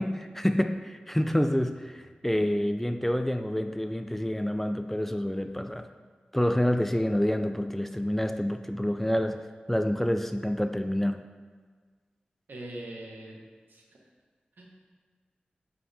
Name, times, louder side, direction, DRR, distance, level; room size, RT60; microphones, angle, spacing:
voice 1, 0.0-5.9 6.3-9.4 9.7-11.2, equal, 10° left, 8 dB, 0.4 m, -28 dB
voice 2, 12.5-13.4 13.7-14.0 14.6-14.7, right 1 dB, 75° right, -1 dB, 1.3 m, -42 dB
8.5 x 5.1 x 3.5 m, 1.5 s
cardioid pair, 50°, 3 cm